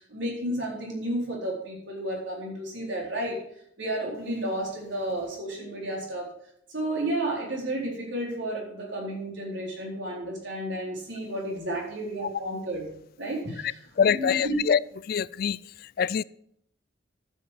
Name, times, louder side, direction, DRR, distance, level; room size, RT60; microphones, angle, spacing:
voice 1, 0.0-3.4 3.8-6.3 6.7-12.9 13.2-13.8 14.1-14.6, right 1 dB, 80° right, 4.2 m, -32 dB
voice 2, 14.0-15.6 16.0-16.2, left 7 dB, 50° left, 0.3 m, -24 dB
11.5 x 7.2 x 6.1 m
head